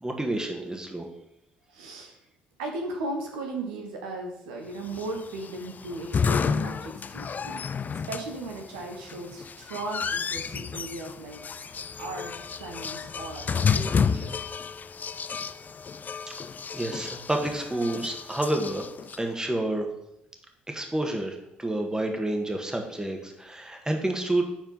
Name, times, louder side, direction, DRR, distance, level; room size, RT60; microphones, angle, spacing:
voice 1, 0.0-1.1 16.7-18.9 19.2-19.9 20.7-24.4, right 1 dB, 15° right, 3 dB, 1.7 m, -29 dB
voice 2, 1.7-2.2 2.6-7.6 7.9-14.4, right 2 dB, 80° right, 2 dB, 1.1 m, -37 dB
sound 1, 4.9-19.2, left 6 dB, 35° left, 0.4 m, -31 dB
7.6 x 4.4 x 5.6 m, 0.81 s
hypercardioid pair, 50°, 5 cm